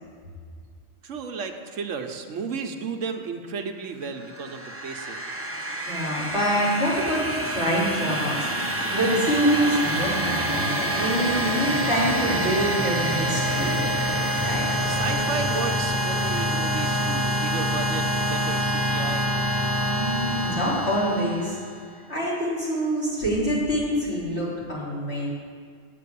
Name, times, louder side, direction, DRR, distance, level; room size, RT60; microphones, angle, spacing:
voice 1, 1.0-5.2 14.9-19.3, right 5 dB, 80° right, 5 dB, 1.2 m, -33 dB
sound 1, 4.2-21.8, equal, 15° right, 0.8 m, -26 dB
voice 2, 5.9-13.8 14.4-14.7 19.9-21.6 22.1-25.3, equal, 60° left, -8 dB, 3.8 m, -26 dB
8.5 x 7.9 x 8.4 m, 2.1 s
omnidirectional pair, 1.3 m